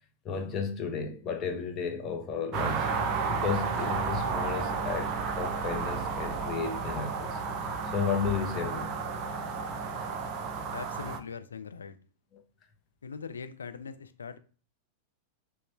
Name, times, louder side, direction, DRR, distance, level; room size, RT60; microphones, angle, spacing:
voice 1, 0.2-2.9 3.3-7.4 7.8-9.0, left 5 dB, 30° left, 0.7 m, -33 dB
sound 1, 2.5-11.2, right 5 dB, 35° right, 0.5 m, -32 dB
sound 2, 3.1-8.4, right 5 dB, 15° right, 1.9 m, -46 dB
voice 2, 10.7-12.0 13.0-14.4, left 5 dB, 70° left, 0.3 m, -41 dB
5.1 x 2.2 x 3.0 m
figure-of-eight pair, 90°, 0 cm